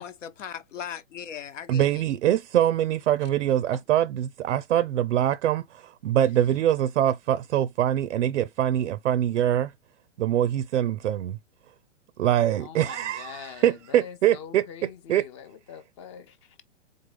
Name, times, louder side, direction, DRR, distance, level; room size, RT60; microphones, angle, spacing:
voice 1, 0.0-2.0, left 8 dB, 80° left, 1.1 m, -38 dB
voice 2, 1.7-9.7 10.2-11.4 12.2-14.7 15.1-15.3, right 11 dB, 80° right, 0.5 m, -24 dB
voice 3, 12.6-16.6, left 8 dB, 25° left, 0.5 m, -44 dB
4.0 x 3.6 x 3.2 m
hypercardioid pair, 145°, 37 cm